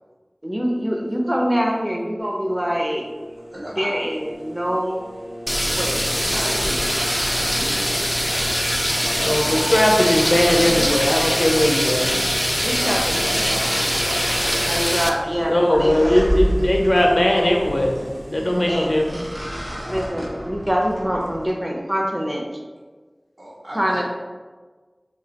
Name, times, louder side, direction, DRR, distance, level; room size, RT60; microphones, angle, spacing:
voice 1, 0.4-3.0 3.8-5.0 5.6-6.0 12.6-13.1 14.7-16.2 18.7-18.9 19.9-22.4 23.7-24.0, equal, 30° right, -1 dB, 0.6 m, -24 dB
sound 1, 2.2-20.1, equal, 45° right, 1.2 m, -40 dB
voice 2, 3.5-4.0 4.8-4.9 6.3-6.9 7.3-8.6 8.9-9.8 12.4-14.7 18.3-18.8 20.1-20.3 23.4-24.0, equal, 60° right, -10 dB, 0.9 m, -35 dB
sound 2, 5.5-15.1, equal, 5° left, 0.3 m, -22 dB
sound 3, 5.6-21.5, equal, 85° right, 1.0 m, -32 dB
voice 3, 9.2-12.1 15.5-17.9 18.3-19.2, left 1 dB, 65° left, 0 dB, 0.5 m, -19 dB
2.8 x 2.3 x 3.9 m, 1.4 s
wide cardioid pair, 40°, 0 cm